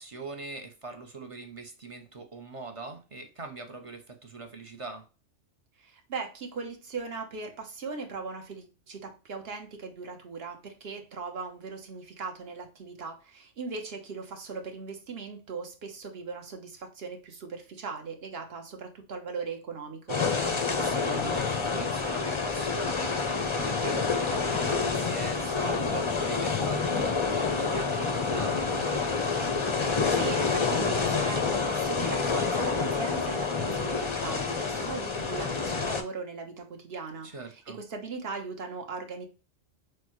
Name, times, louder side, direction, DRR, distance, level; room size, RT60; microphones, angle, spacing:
voice 1, 0.0-5.0 20.8-28.9 37.2-37.8, right 3 dB, 35° right, 4 dB, 0.6 m, -41 dB
voice 2, 5.8-20.2 29.8-39.3, right 4 dB, 55° right, 4 dB, 1.1 m, -39 dB
sound 1, 20.1-36.0, left 4 dB, 35° left, 0.5 m, -28 dB
6.3 x 2.2 x 3.0 m, 0.33 s
omnidirectional pair, 1.3 m